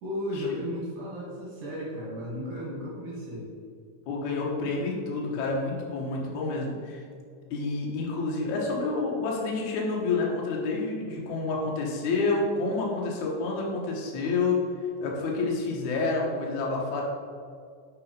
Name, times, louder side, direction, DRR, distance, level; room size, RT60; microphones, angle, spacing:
voice 1, 0.0-3.5, left 1 dB, 60° right, -6 dB, 2.6 m, -34 dB
voice 2, 4.1-7.0 7.5-14.6 15.0-17.0, left 3 dB, 85° left, -2 dB, 1.7 m, -29 dB
6.1 x 5.8 x 5.3 m, 2.2 s
omnidirectional pair, 5.3 m